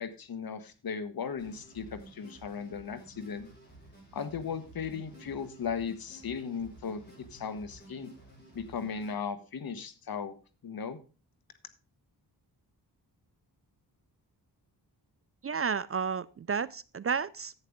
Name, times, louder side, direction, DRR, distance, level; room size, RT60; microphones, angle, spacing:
voice 1, 0.0-3.5 4.1-7.0 7.3-8.1 8.5-10.3 10.6-11.0, left 6 dB, 60° left, 11 dB, 1.3 m, -37 dB
sound 1, 1.4-9.1, right 2 dB, 25° left, 6.9 m, -53 dB
voice 2, 15.4-17.5, right 6 dB, 35° right, 17 dB, 0.4 m, -32 dB
11.0 x 8.4 x 3.6 m, 0.33 s
cardioid pair, 90°, 40 cm